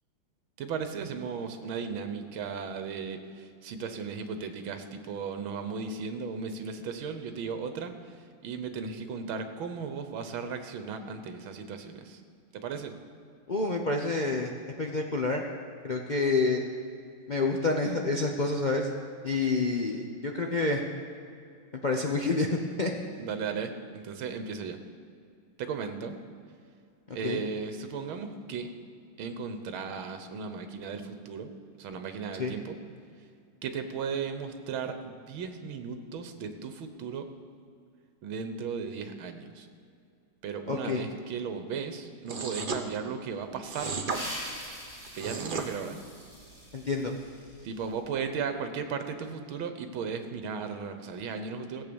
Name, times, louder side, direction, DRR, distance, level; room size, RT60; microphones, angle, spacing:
voice 1, 0.6-8.2 8.4-12.2 12.5-13.0 23.2-24.8 25.6-26.2 27.1-28.7 29.2-31.5 31.8-32.8 33.6-37.3 38.2-39.7 40.4-44.0 45.2-46.0 47.6-51.8, right 5 dB, 80° right, 8 dB, 1.8 m, -36 dB
voice 2, 13.5-15.4 15.8-16.6 17.3-18.9 19.2-20.8 21.8-22.5 22.8-22.9 27.2-27.4 32.4-32.6 40.7-41.0 46.7-47.1, left 3 dB, 70° left, 0 dB, 0.4 m, -28 dB
sound 1, 42.3-42.8 43.7-44.2 45.0-45.7, right 4 dB, 45° right, 0.7 m, -33 dB
sound 2, 43.4-48.0, equal, 10° right, 3.4 m, -43 dB
15.5 x 8.1 x 7.0 m, 2.4 s
omnidirectional pair, 2.2 m